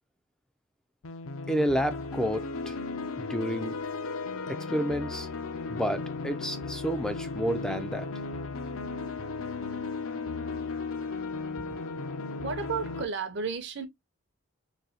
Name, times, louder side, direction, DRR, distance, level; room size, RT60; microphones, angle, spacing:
sound 1, 1.0-13.0, left 4 dB, 65° left, 0.6 m, -35 dB
voice 1, 1.5-2.8 3.2-3.7 4.5-5.3 5.7-8.1, equal, 5° left, 0.3 m, -30 dB
voice 2, 12.4-13.9, right 5 dB, 50° right, 0.6 m, -33 dB
4.0 x 2.7 x 2.7 m
head